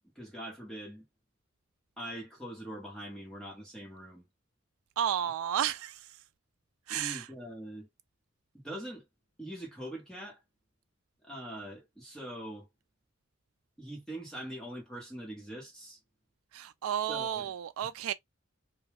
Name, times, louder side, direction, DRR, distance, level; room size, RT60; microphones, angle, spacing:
voice 1, 0.2-1.0 2.0-4.2 6.9-7.9 8.6-9.0 9.4-10.4 11.2-12.7 13.8-16.0 17.1-17.5 17.8-17.9, right 1 dB, 5° left, 1.0 m, -43 dB
voice 2, 5.0-6.0 6.9-7.2 16.5-18.1, right 10 dB, 85° right, 0.3 m, -32 dB
2.3 x 2.2 x 3.2 m
head